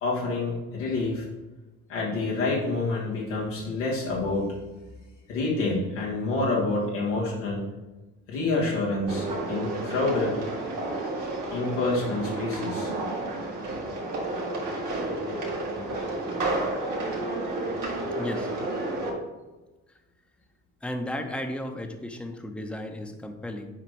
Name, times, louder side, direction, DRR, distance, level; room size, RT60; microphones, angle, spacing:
voice 1, 0.0-1.2 1.9-4.6 5.3-7.6 8.3-10.4 11.5-12.9, left 2 dB, 90° left, -5 dB, 1.5 m, -27 dB
sound 1, 9.1-19.1, right 2 dB, 60° right, 1.8 m, -31 dB
voice 2, 18.2-18.5 20.8-23.7, left 1 dB, 5° left, 5 dB, 0.9 m, -34 dB
7.5 x 5.0 x 3.3 m, 1.1 s
hypercardioid pair, 45°, 36 cm